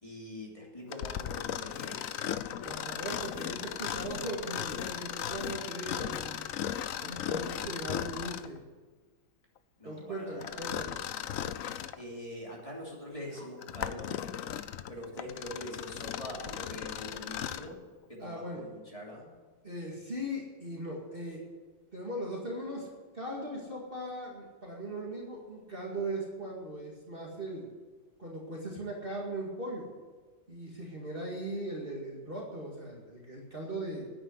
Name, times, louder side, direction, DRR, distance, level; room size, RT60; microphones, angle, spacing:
voice 1, 0.0-2.2 9.8-10.6 12.0-14.2 14.9-17.8 18.1-19.3, left 1 dB, 20° left, -3 dB, 3.0 m, -43 dB
Mechanisms, 0.9-8.6 10.4-12.0 12.6-12.7 13.4-17.7, left 10 dB, 65° left, 0.9 m, -37 dB
voice 2, 2.6-6.4 7.0-8.6 9.8-11.0 18.2-18.7 19.6-21.4 21.9-22.9 23.1-27.7 28.2-29.9 30.5-34.0, right 1 dB, 30° right, -3 dB, 2.2 m, -39 dB
10.0 x 9.5 x 9.5 m, 1.4 s
omnidirectional pair, 1.9 m